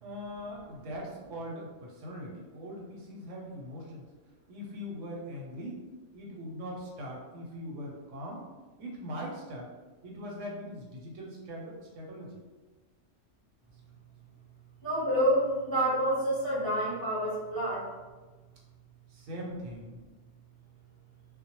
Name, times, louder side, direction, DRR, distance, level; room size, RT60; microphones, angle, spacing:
voice 1, 0.0-4.0 4.5-5.8 6.1-8.4 8.8-9.7 10.0-12.4 19.1-20.0, equal, 85° right, -2 dB, 1.0 m, -41 dB
voice 2, 14.8-17.8, right 1 dB, 30° left, -9 dB, 0.4 m, -28 dB
2.1 x 2.0 x 2.8 m, 1.3 s
omnidirectional pair, 1.2 m